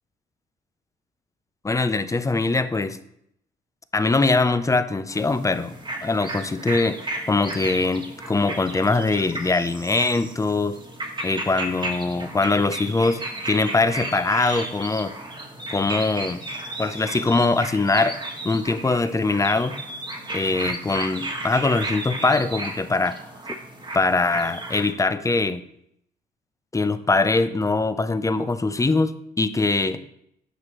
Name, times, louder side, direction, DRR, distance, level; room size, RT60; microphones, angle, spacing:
voice 1, 1.6-3.0 3.9-7.0 7.3-10.8 11.2-15.1 15.7-16.4 16.8-18.2 18.4-19.8 20.3-23.2 23.9-25.6 26.7-30.0, left 3 dB, 15° left, 12 dB, 0.5 m, -22 dB
sound 1, 5.1-24.9, right 1 dB, 25° right, 1.3 m, -34 dB
9.5 x 5.9 x 3.1 m, 0.74 s
cardioid pair, 90°, 20 cm